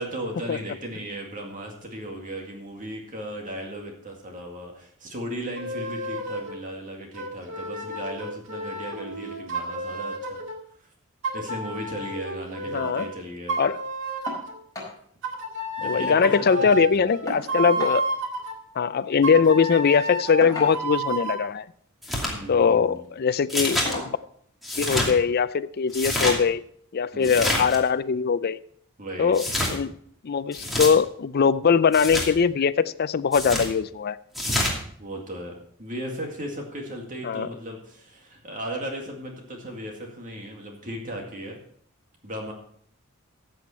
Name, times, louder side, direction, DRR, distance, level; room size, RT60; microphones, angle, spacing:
voice 1, 0.0-10.4 10.8-10.9 11.3-13.6 15.8-17.1 22.3-23.1 27.1-27.5 29.0-29.4 35.0-41.6 42.2-42.5, right 1 dB, 40° right, 2.1 m, -36 dB
sound 1, 5.6-6.6 7.1-10.6 11.2-13.1 13.5-14.6 15.2-18.5 19.2-21.4, right 2 dB, 60° right, 1.9 m, -31 dB
voice 2, 12.7-13.1 13.6-13.8 15.8-18.0 18.8-21.7 22.5-24.2 24.8-26.6 26.9-28.6 29.2-29.9 30.2-34.2 37.2-37.5, left 6 dB, 45° left, 0.4 m, -21 dB
sound 2, 14.3-14.5 14.7-15.0 15.3-15.4 15.7-16.4 17.3-18.0 19.2-19.4 20.4-21.1 22.1-22.4 22.9-23.1 23.9-24.2 25.4-25.5 26.0-26.1, left 1 dB, 15° left, 4.9 m, -36 dB
sound 3, 22.0-22.3 23.5-23.9 24.6-25.1 25.9-26.4 27.2-27.8 29.3-29.7 30.5-30.9 31.9-32.3 33.3-33.7 34.3-34.7, left 1 dB, ahead, 2.6 m, -26 dB
14.0 x 7.8 x 4.3 m
head